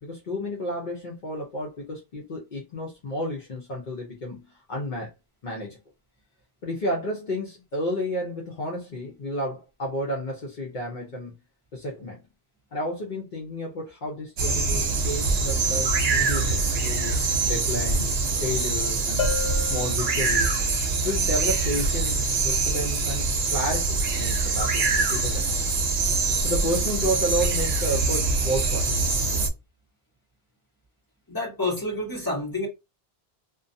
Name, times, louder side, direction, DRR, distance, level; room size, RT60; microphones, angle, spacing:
voice 1, 0.0-5.1 5.4-5.8 6.6-11.4 11.7-12.2 12.7-19.3 19.6-20.6 21.0-25.6 26.4-28.9, equal, 55° left, 0.8 m, -31 dB
sound 1, 14.4-29.5, right 3 dB, 75° right, 0.8 m, -24 dB
Bell, 19.2-20.8, left 6 dB, 85° left, 0.8 m, -32 dB
voice 2, 31.3-32.7, left 2 dB, 20° left, 1.2 m, -28 dB
2.5 x 2.2 x 2.6 m
omnidirectional pair, 1.0 m